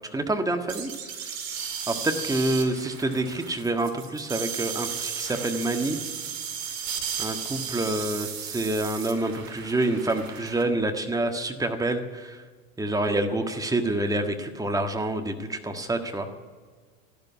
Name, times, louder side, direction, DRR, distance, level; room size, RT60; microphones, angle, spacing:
voice 1, 0.1-0.9 1.9-6.0 7.2-12.4 12.8-16.3, right 2 dB, 10° right, 5 dB, 1.6 m, -27 dB
sound 1, 0.7-10.6, right 7 dB, 70° right, 2.5 m, -35 dB
12.5 x 12.0 x 9.5 m, 1.5 s
hypercardioid pair, 85°, 41 cm